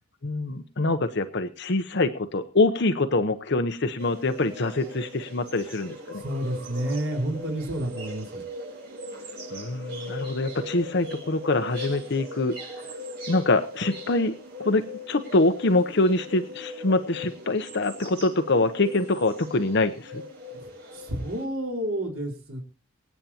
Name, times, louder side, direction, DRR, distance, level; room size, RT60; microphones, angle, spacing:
voice 1, 0.2-6.2 9.5-12.6 13.3-14.3 14.6-20.2, left 2 dB, 55° left, 8 dB, 0.8 m, -25 dB
sound 1, 4.0-21.4, left 1 dB, 50° right, 6.0 m, -40 dB
voice 2, 6.1-8.4 20.5-22.6, right 1 dB, 80° right, -1 dB, 4.5 m, -30 dB
24.5 x 9.1 x 2.9 m, 0.34 s
head